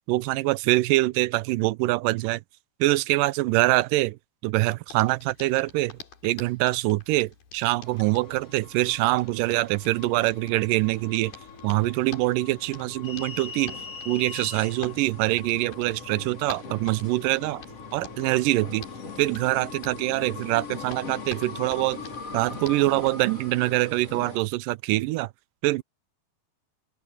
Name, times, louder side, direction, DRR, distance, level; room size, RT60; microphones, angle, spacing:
voice 1, 0.1-2.4 2.8-4.2 4.4-11.3 11.6-13.7 14.1-17.6 17.9-18.9 19.2-22.0 22.3-25.3 25.6-25.8, right 19 dB, 80° right, 2.2 m, -24 dB
Hands, 4.9-23.2, left 6 dB, 90° left, 5.3 m, -48 dB
sound 1, 7.8-24.4, left 4 dB, 45° left, 5.6 m, -41 dB
open air
omnidirectional pair, 4.0 m